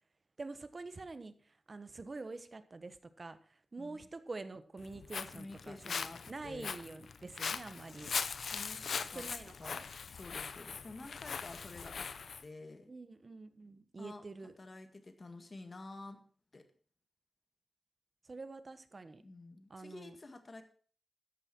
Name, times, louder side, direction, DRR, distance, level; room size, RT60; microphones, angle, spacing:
voice 1, 0.4-1.3 1.7-3.4 3.7-8.1 9.1-9.8 12.9-14.5 18.3-19.2 19.7-20.2, right 3 dB, 35° right, 12 dB, 1.1 m, -46 dB
voice 2, 3.8-4.1 5.3-6.8 8.5-9.2 9.6-12.1 12.4-12.9 14.0-14.2 14.6-16.2 16.5-16.7 19.2-20.6, left 2 dB, 35° left, 8 dB, 1.8 m, -50 dB
Walk footsteps, 4.8-12.4, left 6 dB, 75° left, 0.7 m, -41 dB
14.0 x 9.9 x 4.4 m, 0.43 s
wide cardioid pair, 160°, 0 cm